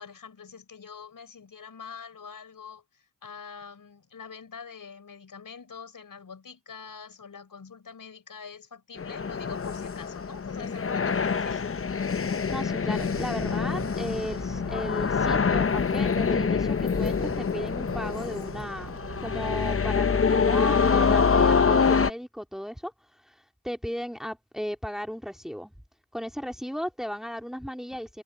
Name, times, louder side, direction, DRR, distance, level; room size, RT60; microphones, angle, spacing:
voice 1, 0.0-11.8, left 6 dB, 65° left, 4.7 m, -44 dB
sound 1, 9.0-22.1, left 5 dB, 40° left, 0.9 m, -25 dB
sound 2, 12.2-20.4, right 7 dB, 80° right, 4.2 m, -44 dB
voice 2, 12.5-22.9 23.2-25.7 26.1-28.2, equal, ahead, 3.0 m, -35 dB
cardioid pair, 60°, 36 cm